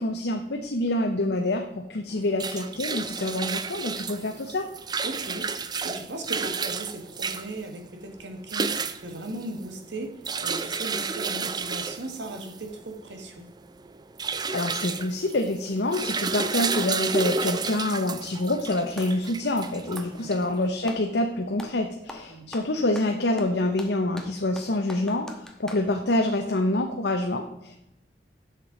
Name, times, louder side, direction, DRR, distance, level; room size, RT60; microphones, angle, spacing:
voice 1, 0.0-4.7 14.5-27.7, left 1 dB, 70° left, 3 dB, 0.9 m, -26 dB
sound 1, 2.1-20.6, right 4 dB, 25° right, 0.5 m, -32 dB
voice 2, 5.0-8.7 9.0-13.5 20.1-20.3 22.3-22.5, right 2 dB, 80° right, 4 dB, 1.7 m, -37 dB
Clapping, 18.7-19.2 19.8-21.1 21.6-21.8 22.1-25.9, left 1 dB, 5° left, 1.1 m, -43 dB
7.5 x 6.7 x 5.1 m, 0.87 s
head